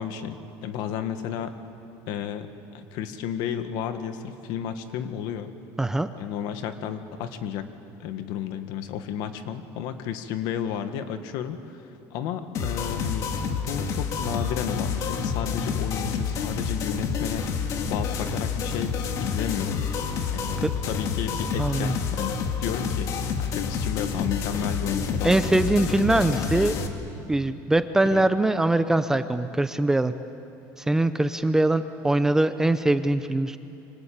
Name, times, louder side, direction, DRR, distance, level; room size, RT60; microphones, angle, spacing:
voice 1, 0.0-1.6 2.1-5.5 6.2-7.7 8.0-19.8 20.3-25.7 26.0-26.5 28.1-28.3, left 9 dB, 60° left, 9 dB, 1.7 m, -33 dB
sound 1, 12.5-26.9, left 6 dB, 45° left, 2.0 m, -28 dB
voice 2, 21.6-21.9 25.2-26.7 27.3-30.1 30.8-33.6, right 2 dB, 5° right, 10 dB, 0.6 m, -22 dB
26.0 x 25.0 x 8.8 m, 2.7 s
cardioid pair, 165°, 8 cm